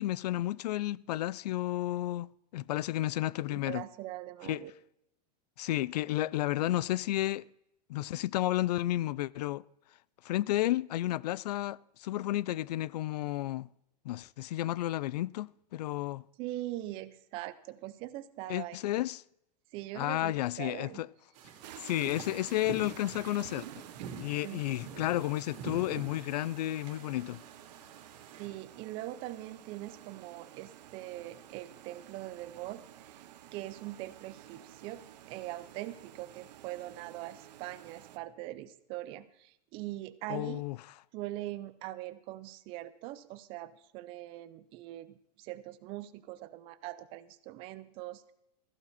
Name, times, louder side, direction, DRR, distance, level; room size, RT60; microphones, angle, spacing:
voice 1, 0.0-2.3 2.5-3.8 4.4-4.6 5.6-7.4 7.9-9.6 10.2-13.7 14.0-16.2 18.5-19.2 19.9-21.1 21.8-23.8 24.2-27.4 40.3-40.8, left 15 dB, 70° left, 0.4 m, -32 dB
voice 2, 3.5-4.7 16.4-18.8 19.7-21.0 24.4-24.6 24.9-25.1 28.4-33.2 33.5-35.0 35.3-40.7 41.1-48.3, right 15 dB, 25° right, 0.5 m, -42 dB
sound 1, 21.3-28.5, right 6 dB, 50° right, 3.1 m, -47 dB
sound 2, 21.6-38.2, right 12 dB, 75° right, 1.0 m, -52 dB
15.0 x 11.5 x 4.1 m
supercardioid pair, 170°, 21 cm